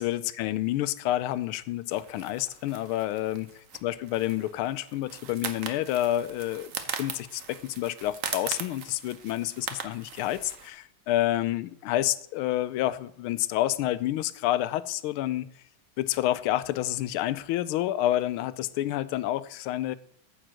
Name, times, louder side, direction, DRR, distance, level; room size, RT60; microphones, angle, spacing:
voice 1, 0.0-3.5 3.8-6.7 7.0-15.5 16.0-20.0, left 14 dB, 85° left, 1.4 m, -29 dB
sound 1, 1.9-10.7, right 7 dB, 50° right, 1.0 m, -40 dB
9.4 x 5.0 x 7.5 m
omnidirectional pair, 2.3 m